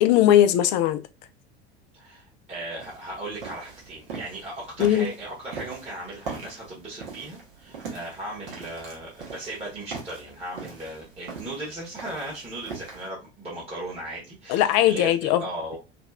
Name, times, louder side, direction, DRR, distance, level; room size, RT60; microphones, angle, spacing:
voice 1, 0.0-1.0 4.8-5.1 14.5-15.4, left 12 dB, 40° left, 0.4 m, -19 dB
voice 2, 1.9-15.8, right 1 dB, 20° right, 1.4 m, -37 dB
sound 1, 2.8-13.1, right 5 dB, 60° right, 1.2 m, -41 dB
2.9 x 2.8 x 2.4 m
figure-of-eight pair, 75°, 32 cm